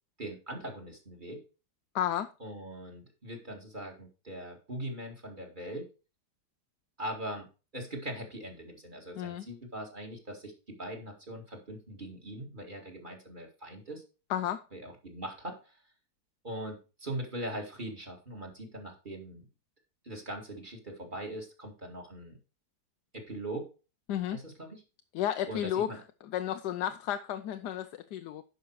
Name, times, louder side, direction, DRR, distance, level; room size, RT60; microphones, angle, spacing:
voice 1, 0.2-1.4 2.4-5.8 7.0-7.5 7.7-14.0 14.7-15.8 16.4-19.4 20.0-22.4 23.1-23.7 24.3-24.8 25.5-26.0, right 1 dB, 30° right, 2.3 m, -41 dB
voice 2, 1.9-2.3 9.2-9.5 14.3-14.6 24.1-24.4 25.1-25.9 26.3-28.4, left 11 dB, 80° left, 1.2 m, -32 dB
10.5 x 5.8 x 4.7 m
omnidirectional pair, 1.8 m